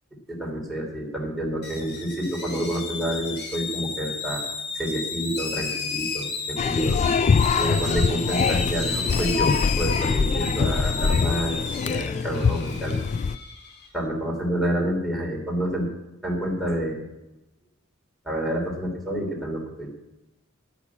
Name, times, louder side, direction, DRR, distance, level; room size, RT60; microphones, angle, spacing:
voice 1, 0.3-4.4 4.7-7.0 7.6-13.0 13.9-15.9 16.2-17.0 18.2-19.9, right 1 dB, ahead, -1 dB, 3.2 m, -28 dB
sound 1, 1.6-13.9, left 4 dB, 50° left, 1.5 m, -33 dB
sound 2, 6.6-13.4, left 5 dB, 35° left, 0.3 m, -23 dB
12.0 x 6.1 x 8.3 m, 0.95 s
head